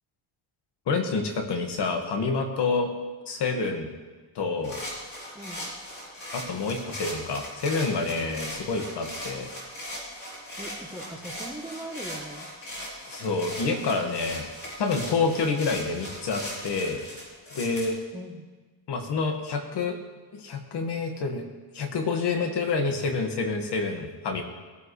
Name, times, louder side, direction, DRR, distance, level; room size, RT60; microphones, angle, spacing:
voice 1, 0.9-2.9 3.3-3.9 4.4-4.8 6.3-9.5 13.1-14.5 14.8-17.0 17.5-18.0 18.9-20.0 20.3-21.4 21.7-24.4, left 4 dB, 65° left, 4 dB, 2.0 m, -28 dB
sound 1, 4.6-17.9, equal, 30° left, 4.4 m, -39 dB
voice 2, 5.3-5.7 10.6-12.5 18.1-18.5, right 1 dB, 5° right, 3 dB, 1.1 m, -40 dB
20.5 x 9.7 x 3.3 m, 1.4 s
cardioid pair, 115°, 44 cm